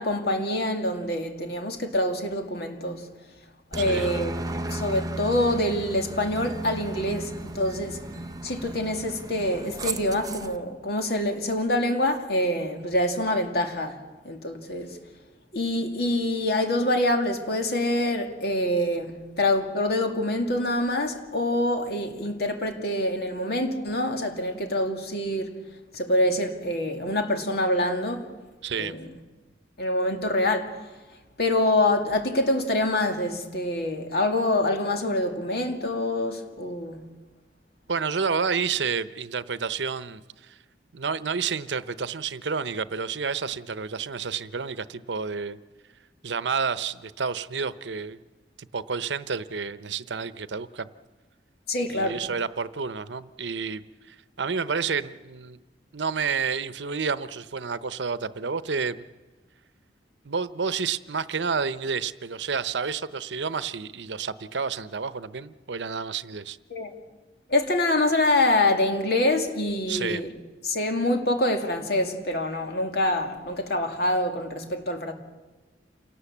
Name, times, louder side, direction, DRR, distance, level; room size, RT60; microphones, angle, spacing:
voice 1, 0.0-3.1 3.7-4.4 4.7-8.0 8.4-14.0 14.2-15.0 15.5-25.5 25.9-28.3 28.8-29.1 29.8-30.8 31.4-37.0 51.7-52.2 66.7-66.9 67.5-70.3 70.6-75.1, left 1 dB, 60° left, 2.3 m, -25 dB
Aircraft, 3.7-10.6, right 2 dB, 20° right, 0.8 m, -35 dB
voice 2, 3.8-4.1 28.6-28.9 37.9-40.6 40.9-45.6 46.2-48.2 48.7-50.9 51.9-53.8 54.1-55.6 55.9-59.0 60.2-66.6 69.9-70.2, right 5 dB, 85° right, 0.8 m, -30 dB
28.0 x 18.5 x 7.3 m
head